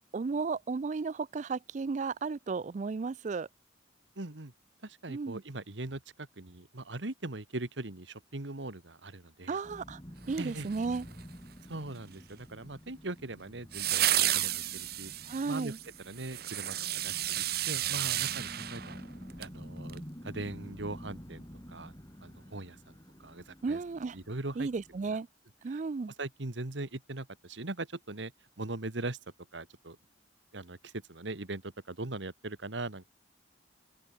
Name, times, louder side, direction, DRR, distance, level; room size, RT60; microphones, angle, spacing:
voice 1, 0.1-3.5 5.1-5.4 9.5-10.0 10.3-11.1 15.3-15.8 23.6-24.2 24.6-25.3 25.6-26.1, right 4 dB, 40° right, 0.4 m, -34 dB
voice 2, 4.2-4.5 4.8-9.6 10.4-10.7 11.7-15.1 15.5-15.7 16.1-19.1 19.4-21.9 22.2-23.8 24.1-24.7 25.7-25.8 26.2-28.3 28.6-29.2 29.5-30.0 30.5-33.1, right 2 dB, 85° right, 1.8 m, -40 dB
sound 1, 9.6-25.1, equal, 20° left, 5.9 m, -49 dB
sound 2, 10.3-11.2 13.7-19.5 19.9-20.0, right 13 dB, 55° right, 1.3 m, -32 dB
open air
head